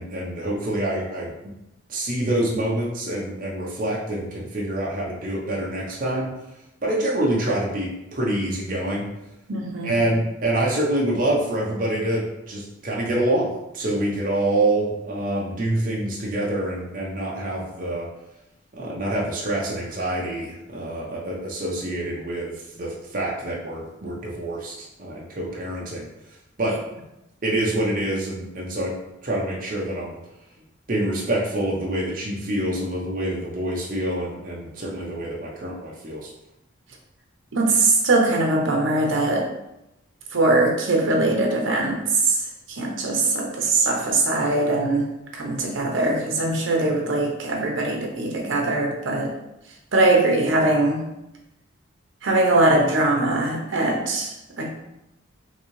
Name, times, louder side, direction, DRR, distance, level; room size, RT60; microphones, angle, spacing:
voice 1, 0.0-1.3 1.9-6.3 6.8-9.0 9.8-13.5 13.7-18.1 18.7-26.1 26.6-26.7 27.4-28.9 29.2-30.2 30.9-36.3, right 1 dB, 45° right, -4 dB, 0.7 m, -26 dB
voice 2, 9.5-9.9 26.7-26.8 37.5-39.5 40.3-42.4 42.7-45.1 45.3-49.3 49.9-51.0 52.2-54.7, right 2 dB, 75° right, 1 dB, 0.8 m, -21 dB
3.8 x 2.7 x 3.1 m, 0.89 s
head